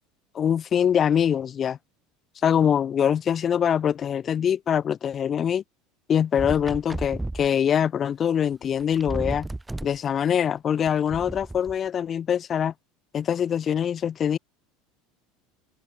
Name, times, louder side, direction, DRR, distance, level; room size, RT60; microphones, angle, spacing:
voice 1, 0.3-1.8 2.4-5.6 6.1-9.5 9.8-12.7 13.1-14.4, left 8 dB, 30° left, 1.9 m, -23 dB
sound 1, 6.4-7.5 8.5-8.6 8.8-10.0 10.9-11.7, right 2 dB, 5° right, 7.8 m, -33 dB
supercardioid pair, 130°, 0 cm